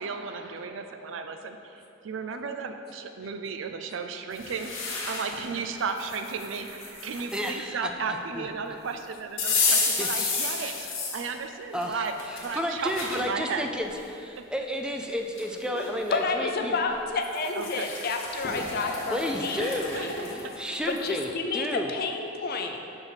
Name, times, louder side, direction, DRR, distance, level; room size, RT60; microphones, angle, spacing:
voice 1, 0.0-1.6 2.0-4.7 5.0-10.7 11.1-12.1 12.4-13.7 14.4-14.5 17.6-17.9 19.9-20.1, right 5 dB, 70° right, 6 dB, 0.4 m, -34 dB
sound 1, 4.3-5.5 6.0-7.5 9.4-11.3 11.8-13.2 13.8-13.9 15.0-15.1 15.4-15.9 17.2-21.3, left 4 dB, 90° left, 1.0 m, -31 dB
voice 2, 7.3-8.5 9.6-10.3 10.6-10.9 11.7-16.8 19.1-20.0 20.3-21.9, equal, 5° right, 3 dB, 0.4 m, -32 dB
voice 3, 16.1-20.1 20.9-22.8, left 3 dB, 50° left, 4 dB, 0.5 m, -30 dB
6.3 x 3.5 x 5.5 m, 2.7 s
head